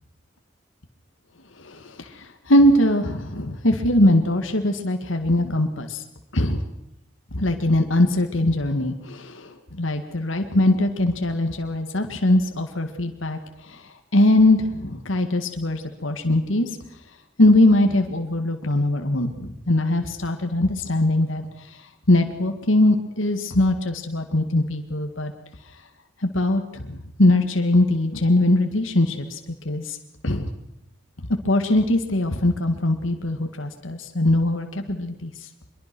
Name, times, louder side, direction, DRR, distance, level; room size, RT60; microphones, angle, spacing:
voice 1, 1.6-6.0 6.3-6.6 7.3-13.8 14.1-16.7 17.4-21.4 21.7-21.8 22.1-25.3 26.2-29.4 29.7-30.0 30.2-30.5 31.4-35.3, left 1 dB, 90° left, 5 dB, 2.0 m, -21 dB
23.5 x 22.5 x 6.2 m, 0.88 s
head